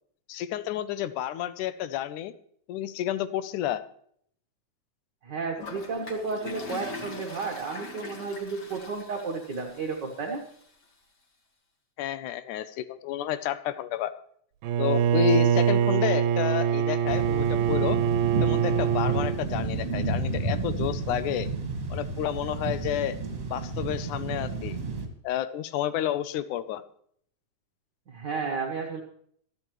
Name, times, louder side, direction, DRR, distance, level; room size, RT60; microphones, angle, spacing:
voice 1, 0.3-2.3 2.7-3.8 12.0-14.1 14.8-18.0 18.4-21.5 21.9-23.2 23.5-24.8 25.2-26.8, left 11 dB, 80° left, 13 dB, 2.1 m, -30 dB
voice 2, 5.2-10.4 28.1-29.0, right 4 dB, 50° right, 0 dB, 1.4 m, -32 dB
Toilet flush, 5.6-10.6, left 2 dB, 40° left, 2.0 m, -42 dB
Bowed string instrument, 14.6-19.4, right 9 dB, 80° right, 2.2 m, -24 dB
sound 1, 17.1-25.1, right 3 dB, 30° right, 1.9 m, -31 dB
25.5 x 9.0 x 3.1 m, 0.64 s
omnidirectional pair, 3.6 m